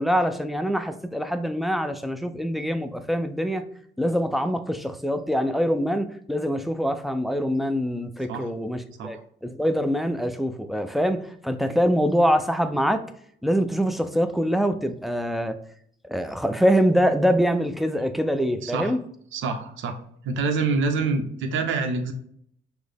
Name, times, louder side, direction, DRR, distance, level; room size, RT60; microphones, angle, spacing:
voice 1, 0.0-3.6 4.0-13.0 13.4-15.6 16.0-19.0, equal, ahead, 9 dB, 0.4 m, -24 dB
voice 2, 18.6-19.0 19.3-20.0 20.2-22.1, right 4 dB, 75° right, 5 dB, 0.7 m, -26 dB
6.0 x 2.1 x 3.4 m, 0.65 s
cardioid pair, 90°, 20 cm